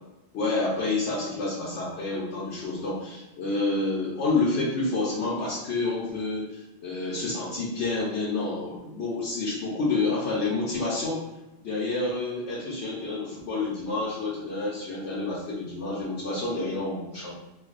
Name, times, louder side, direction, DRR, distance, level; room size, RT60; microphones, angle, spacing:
voice 1, 0.3-11.2 11.6-17.3, left 3 dB, 80° left, -7 dB, 1.0 m, -29 dB
3.2 x 2.2 x 2.4 m, 1.0 s
omnidirectional pair, 1.1 m